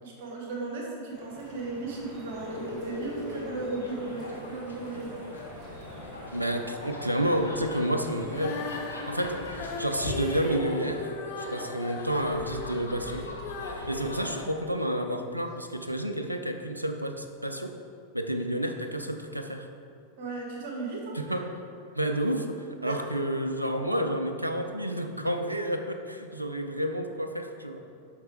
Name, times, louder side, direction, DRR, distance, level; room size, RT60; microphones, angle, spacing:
voice 1, 0.0-5.2 20.2-21.2 22.8-23.0, right 3 dB, 50° right, -2 dB, 1.8 m, -36 dB
Drip, 1.1-10.5, right 1 dB, 20° right, 2.1 m, -46 dB
sound 1, 2.3-14.4, left 2 dB, 80° left, 1.0 m, -41 dB
voice 2, 6.3-8.6 9.1-13.3 13.9-17.8 18.1-19.7 21.1-21.5 22.0-27.8, equal, 85° right, 6 dB, 0.4 m, -30 dB
Female singing, 8.2-15.3 15.9-16.0, left 3 dB, 45° left, 0.9 m, -39 dB
7.7 x 5.7 x 4.9 m, 2.4 s
figure-of-eight pair, 90°, 0 cm